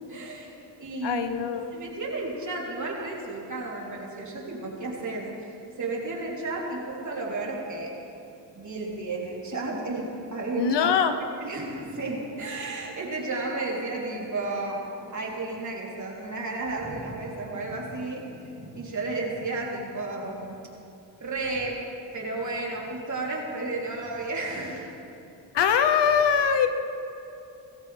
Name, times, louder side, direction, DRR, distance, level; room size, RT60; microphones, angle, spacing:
voice 1, 0.1-1.2 1.7-7.9 8.5-10.9 11.4-14.9 15.1-20.6 21.2-21.8 22.1-24.9, right 2 dB, 45° right, -3 dB, 3.6 m, -33 dB
voice 2, 1.0-1.8 10.6-11.1 25.5-26.7, left 7 dB, 75° left, 8 dB, 1.0 m, -22 dB
19.0 x 15.5 x 3.5 m, 2.8 s
cardioid pair, 65°, 42 cm